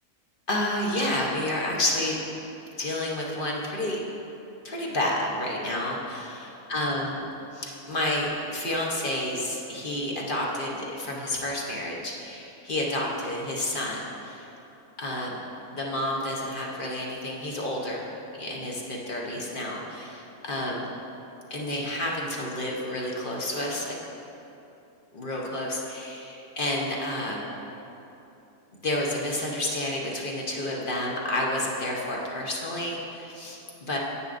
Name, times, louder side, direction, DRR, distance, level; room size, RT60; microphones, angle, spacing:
voice 1, 0.5-2.2 2.8-4.0 4.6-7.3 7.5-14.5 15.0-15.4 15.7-18.1 18.4-20.9 21.5-24.0 25.1-27.5 28.7-34.0, left 1 dB, 40° left, -2 dB, 0.9 m, -30 dB
9.6 x 8.6 x 2.6 m, 2.9 s
omnidirectional pair, 1.6 m